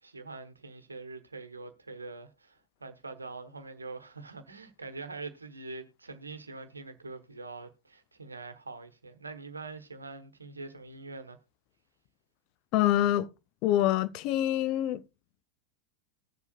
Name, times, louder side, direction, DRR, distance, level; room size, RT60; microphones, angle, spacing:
voice 1, 0.0-11.4, right 3 dB, 80° right, 1.0 m, -44 dB
voice 2, 12.7-13.3 13.6-15.0, left 13 dB, 40° left, 0.5 m, -25 dB
20.0 x 7.0 x 2.2 m
figure-of-eight pair, 90°, 0 cm